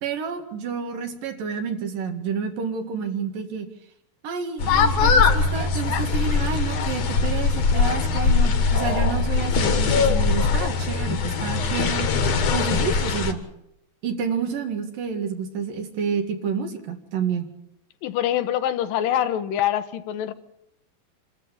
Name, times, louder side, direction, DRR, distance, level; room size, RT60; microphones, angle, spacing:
voice 1, 0.0-3.7 4.2-12.1 12.5-13.4 14.0-17.5, right 6 dB, 70° right, 5 dB, 3.6 m, -29 dB
sound 1, 4.6-13.3, left 5 dB, 55° left, 2.5 m, -21 dB
voice 2, 18.0-20.3, left 11 dB, 75° left, 11 dB, 2.5 m, -24 dB
27.0 x 13.5 x 8.6 m, 0.81 s
omnidirectional pair, 4.1 m